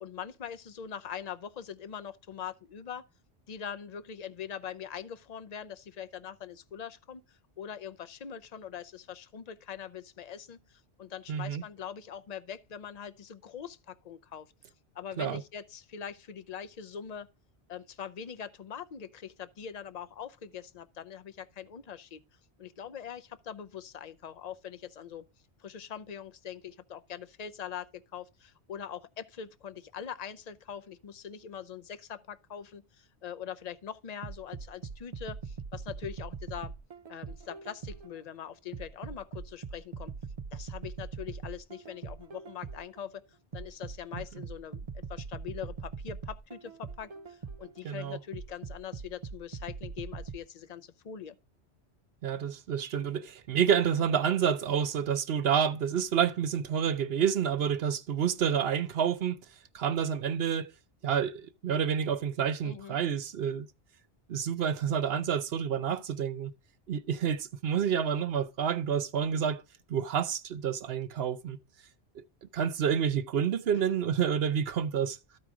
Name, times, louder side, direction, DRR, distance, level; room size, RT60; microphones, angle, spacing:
voice 1, 0.0-3.0 3.5-14.5 14.9-17.3 17.7-22.2 22.6-25.3 25.6-36.7 37.1-40.1 40.5-43.2 43.5-51.4 62.6-63.0 73.7-73.8, left 8 dB, 45° left, 0.7 m, -42 dB
voice 2, 11.3-11.6 15.2-15.4 47.8-48.2 52.2-59.4 59.7-60.7 61.0-63.7 64.3-66.5 66.9-69.6 69.9-71.6 72.5-75.2, right 8 dB, 65° right, 0.9 m, -29 dB
sound 1, 34.2-38.2 38.7-43.0 43.5-47.8 48.3-50.4, right 5 dB, 40° right, 0.6 m, -41 dB
13.5 x 4.8 x 3.7 m
omnidirectional pair, 1.1 m